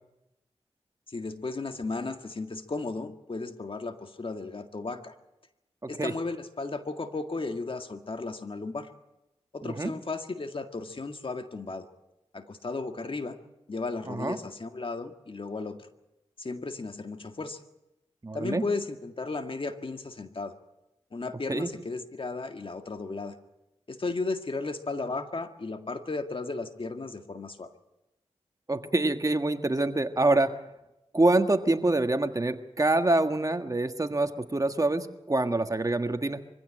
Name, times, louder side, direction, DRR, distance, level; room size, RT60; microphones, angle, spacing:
voice 1, 1.1-5.1 5.9-8.9 9.5-11.9 12.3-13.4 13.7-15.9 16.4-17.6 18.3-20.5 21.1-23.4 23.9-27.7, left 3 dB, 50° left, 7 dB, 1.9 m, -35 dB
voice 2, 5.8-6.1 9.6-9.9 14.1-14.4 18.2-18.6 21.5-21.7 28.7-30.5 31.1-36.4, right 2 dB, 30° right, 8 dB, 1.6 m, -26 dB
23.5 x 16.0 x 8.7 m, 0.96 s
cardioid pair, 50°, 11 cm